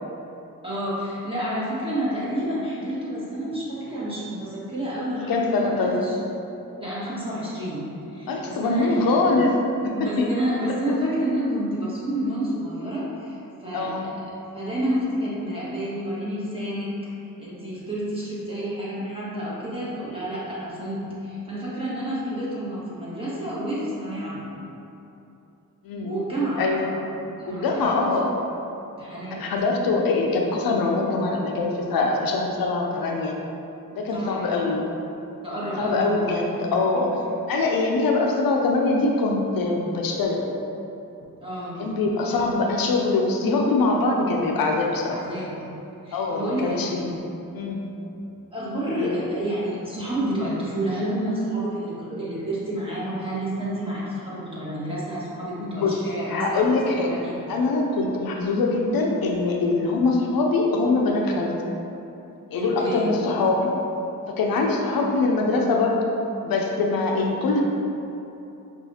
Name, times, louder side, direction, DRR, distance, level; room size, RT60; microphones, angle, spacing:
voice 1, 0.6-6.1 6.8-9.1 9.9-14.2 14.5-16.9 17.2-24.5 26.0-27.1 27.4-27.9 29.0-29.4 34.1-34.4 35.4-36.4 36.9-37.1 41.4-41.9 45.1-45.6 46.0-47.0 48.5-56.7 56.9-57.3 62.5-63.2, right 1 dB, 15° right, -9 dB, 1.5 m, -29 dB
voice 2, 5.3-6.0 8.3-9.5 9.8-10.3 13.7-14.0 25.8-26.1 26.6-26.8 27.5-28.3 29.3-33.4 33.9-34.8 35.8-37.1 37.5-40.4 41.8-45.2 46.1-47.2 47.5-47.8 48.9-49.1 55.6-56.0 56.3-57.1 57.5-61.5 62.5-63.7 64.3-66.0 66.4-67.6, left 3 dB, 85° left, 0 dB, 0.5 m, -23 dB
5.5 x 2.4 x 2.7 m, 2.9 s
cardioid pair, 45°, 34 cm